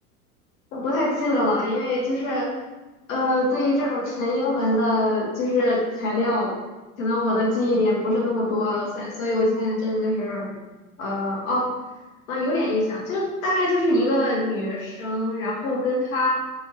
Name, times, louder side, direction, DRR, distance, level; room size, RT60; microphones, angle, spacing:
voice 1, 0.7-2.5 3.1-6.5 7.0-10.5 11.0-11.6 12.3-16.3, left 1 dB, 65° left, -3 dB, 1.3 m, -23 dB
4.3 x 2.7 x 3.1 m, 1.2 s
figure-of-eight pair, 85°, 44 cm